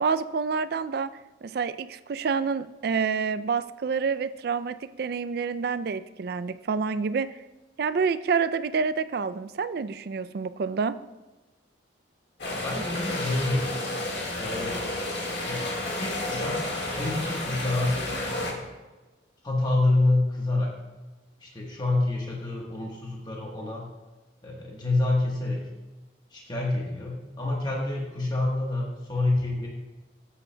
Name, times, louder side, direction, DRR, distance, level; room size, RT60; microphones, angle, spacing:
voice 1, 0.0-1.1 1.4-7.3 7.8-11.0, right 5 dB, 55° right, 13 dB, 0.3 m, -28 dB
sound 1, 12.4-18.5, left 1 dB, 65° left, 1.7 m, -31 dB
voice 2, 12.4-13.7 14.4-14.8 15.5-15.6 16.0-18.6 19.4-20.7 21.4-23.9 24.4-25.6 26.3-29.7, left 2 dB, 20° left, -2 dB, 1.2 m, -27 dB
13.5 x 8.6 x 2.2 m, 1.1 s
head